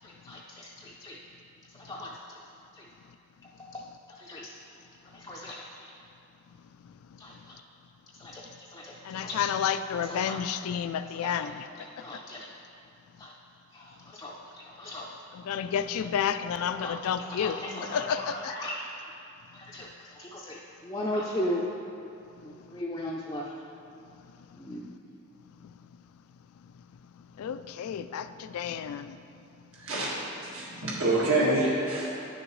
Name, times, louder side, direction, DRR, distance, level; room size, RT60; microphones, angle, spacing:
voice 1, 0.0-1.2 1.7-2.4 2.7-2.9 3.6-4.8 5.1-5.9 7.2-7.6 8.1-9.4 10.1-10.4 11.0-11.5 12.0-12.5 13.2-13.3 13.7-15.1 16.0-16.1 16.8-16.9 17.2-18.9 19.5-19.9 20.2-21.7 22.4-23.5 24.5-25.1 30.7-30.8 31.9-32.1, left 1 dB, 15° left, -4 dB, 0.4 m, -38 dB
voice 2, 9.0-11.7 15.3-18.5 27.4-29.2, left 8 dB, 85° left, 12 dB, 0.3 m, -31 dB
voice 3, 29.8-32.1, right 2 dB, 70° right, -5 dB, 1.7 m, -27 dB
9.7 x 6.4 x 3.1 m, 2.7 s
head